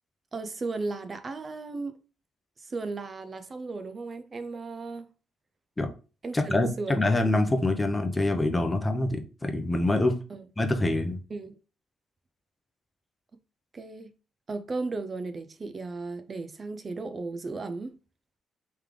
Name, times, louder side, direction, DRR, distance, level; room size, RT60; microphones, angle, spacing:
voice 1, 0.3-1.9 2.6-5.1 6.2-7.2 10.3-10.4 11.3-11.6 13.7-14.1 14.5-18.0, right 3 dB, 35° right, 0.4 m, -35 dB
voice 2, 6.3-10.2 10.6-11.2, left 2 dB, 15° left, 0.7 m, -25 dB
3.3 x 3.2 x 3.6 m
cardioid pair, 90°, 0 cm